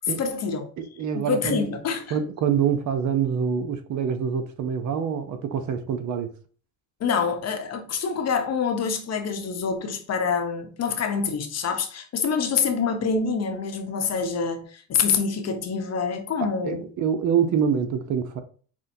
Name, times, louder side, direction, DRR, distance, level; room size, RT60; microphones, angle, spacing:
voice 1, 0.1-0.7 1.1-2.2 7.0-16.9, left 5 dB, 40° left, 0.9 m, -26 dB
voice 2, 0.8-1.6 2.1-6.3 16.4-18.4, right 7 dB, 50° right, 0.7 m, -25 dB
6.0 x 2.2 x 2.7 m
supercardioid pair, 75°, 38 cm